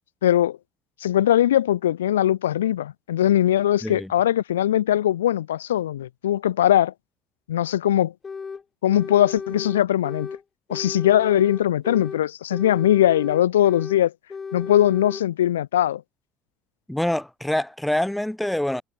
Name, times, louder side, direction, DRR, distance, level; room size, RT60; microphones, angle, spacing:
voice 1, 0.2-0.6 1.0-6.9 7.5-8.1 8.8-10.3 10.7-14.1 14.5-16.0, left 12 dB, 75° left, 0.4 m, -20 dB
sound 1, 8.2-8.6 8.9-10.4 10.7-12.2 12.5-14.0 14.3-15.2, left 5 dB, 30° left, 1.0 m, -35 dB
voice 2, 16.9-18.8, left 1 dB, 5° left, 0.5 m, -25 dB
figure-of-eight pair, 60°, 0 cm